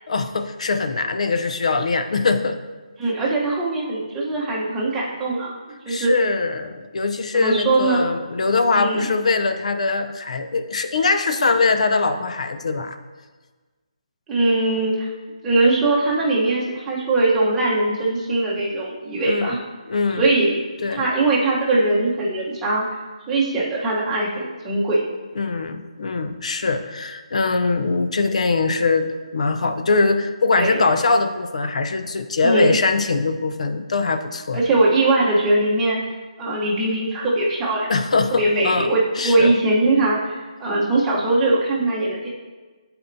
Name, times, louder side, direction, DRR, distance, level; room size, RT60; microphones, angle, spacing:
voice 1, 0.1-2.6 5.9-13.0 19.2-19.6 19.9-20.3 20.8-21.1 25.4-34.6 37.9-38.9 39.2-39.5, left 3 dB, 70° left, 8 dB, 0.6 m, -22 dB
voice 2, 3.0-5.6 5.8-6.1 7.3-8.0 8.7-9.1 14.3-15.1 15.4-19.6 20.2-20.6 20.9-22.9 23.3-25.0 30.5-30.8 32.4-32.7 34.5-36.0 36.4-37.9 38.3-42.3, right 2 dB, 10° right, -5 dB, 1.0 m, -21 dB
11.0 x 4.4 x 2.7 m, 1.3 s
hypercardioid pair, 165°, 4 cm